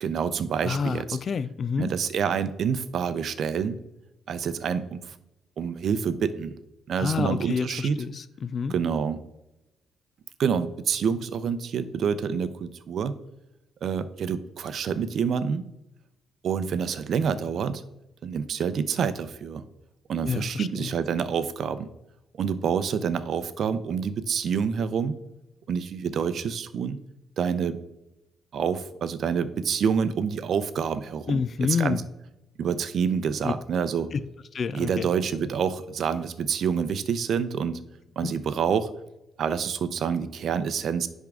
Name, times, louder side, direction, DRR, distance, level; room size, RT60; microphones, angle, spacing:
voice 1, 0.0-1.2 1.8-3.8 4.3-5.1 5.6-6.6 6.9-8.0 8.7-9.2 10.4-13.2 13.8-15.6 16.4-17.8 18.2-19.6 20.1-21.9 22.4-25.2 25.7-27.0 27.4-27.8 28.5-32.0 32.6-34.1 34.7-37.8 38.2-38.9 39.4-41.1, right 7 dB, 60° right, 13 dB, 0.6 m, -27 dB
voice 2, 0.6-1.9 7.0-8.7 20.2-20.9 31.3-32.0 33.4-33.5 34.1-34.2 34.5-35.1 38.2-38.3, left 5 dB, 45° left, 14 dB, 0.3 m, -28 dB
10.0 x 3.6 x 3.5 m, 0.90 s
cardioid pair, 95°, 0 cm